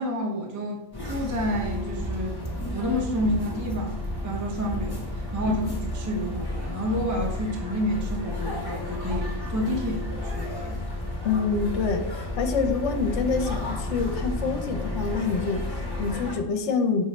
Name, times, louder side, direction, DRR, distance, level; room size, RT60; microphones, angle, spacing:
voice 1, 0.0-4.0 4.2-10.8, equal, 20° right, 0 dB, 0.6 m, -29 dB
sound 1, 0.9-16.4, left 1 dB, 20° left, 1.2 m, -32 dB
voice 2, 11.2-17.0, left 5 dB, 70° left, 5 dB, 1.0 m, -26 dB
6.0 x 5.1 x 3.2 m, 0.89 s
omnidirectional pair, 1.3 m